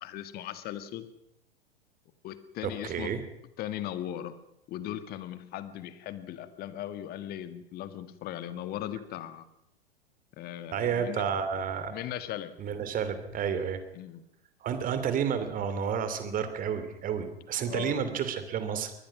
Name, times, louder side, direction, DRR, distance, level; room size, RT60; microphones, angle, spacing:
voice 1, 0.0-1.1 2.2-3.1 3.6-4.4 4.7-9.5 10.4-11.2 11.9-12.5 13.9-14.2 17.7-18.0, left 12 dB, 30° left, 12 dB, 1.8 m, -38 dB
voice 2, 2.6-3.2 10.7-11.9 12.6-13.8 14.6-18.9, right 7 dB, 25° right, 10 dB, 3.0 m, -31 dB
23.5 x 20.0 x 6.1 m, 0.83 s
figure-of-eight pair, 100°, 32 cm